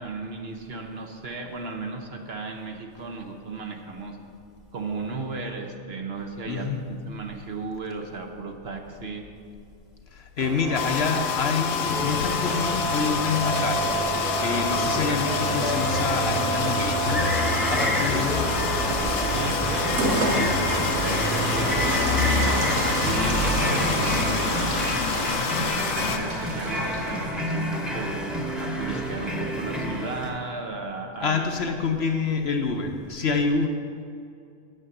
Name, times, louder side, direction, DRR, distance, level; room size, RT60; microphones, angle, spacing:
voice 1, 0.0-4.2 4.7-9.3 19.2-28.1 28.6-31.5, right 3 dB, 50° right, 3 dB, 1.1 m, -35 dB
voice 2, 6.5-6.8 10.1-13.8 14.4-17.4 17.7-18.5 31.2-33.7, left 4 dB, 55° left, 4 dB, 0.9 m, -27 dB
sound 1, 10.4-30.3, equal, ahead, 1.0 m, -30 dB
sound 2, 10.7-26.2, left 8 dB, 90° left, 1.1 m, -29 dB
Rain, 11.8-27.2, right 1 dB, 85° right, 1.9 m, -28 dB
8.7 x 7.0 x 7.7 m, 2.5 s
omnidirectional pair, 1.4 m